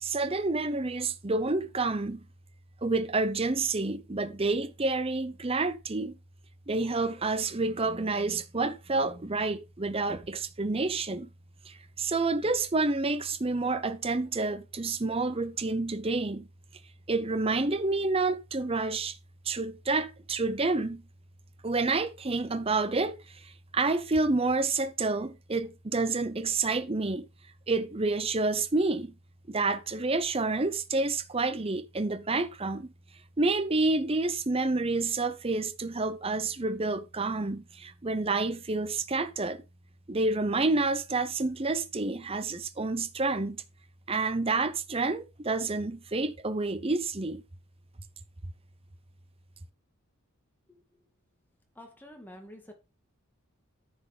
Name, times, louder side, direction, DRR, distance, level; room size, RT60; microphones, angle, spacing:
voice 1, 0.0-2.2 2.8-6.1 6.7-11.3 11.7-16.5 17.1-19.2 19.5-21.0 21.6-23.1 23.7-27.2 27.7-29.1 29.5-32.9 33.4-39.6 40.1-43.6 44.1-47.4, right 3 dB, 25° right, 0.7 m, -29 dB
voice 2, 51.8-52.7, left 1 dB, 10° left, 2.1 m, -48 dB
10.0 x 6.2 x 3.8 m
head